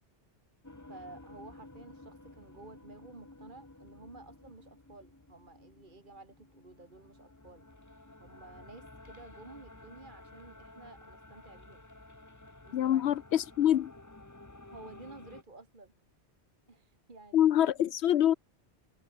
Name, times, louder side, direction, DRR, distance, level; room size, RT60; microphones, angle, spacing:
sound 1, 0.6-15.4, left 2 dB, 15° left, 1.3 m, -53 dB
voice 1, 0.9-7.7 8.2-11.8 12.6-13.0 14.7-15.9 16.7-17.5, right 3 dB, 45° right, 2.3 m, -52 dB
voice 2, 12.7-13.9 17.3-18.3, left 11 dB, 70° left, 0.9 m, -25 dB
omnidirectional pair, 1.2 m